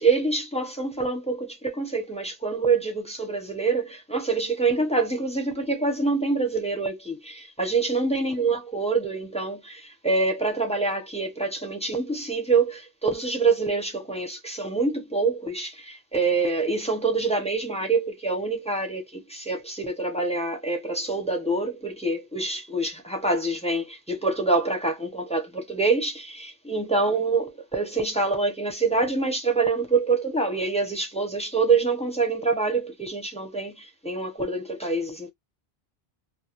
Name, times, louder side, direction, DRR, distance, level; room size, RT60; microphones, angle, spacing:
voice 1, 0.0-35.3, right 3 dB, 10° left, 0.5 m, -26 dB
2.3 x 2.3 x 2.8 m
omnidirectional pair, 1.0 m